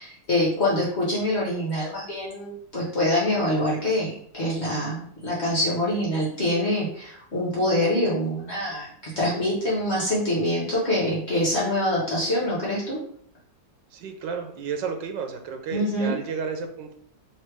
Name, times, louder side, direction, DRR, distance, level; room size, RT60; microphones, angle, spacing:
voice 1, 0.0-13.0 15.7-16.1, left 1 dB, 40° left, -6 dB, 1.4 m, -25 dB
voice 2, 13.9-16.9, right 6 dB, 85° right, 5 dB, 1.3 m, -32 dB
3.2 x 3.2 x 4.7 m, 0.63 s
omnidirectional pair, 1.9 m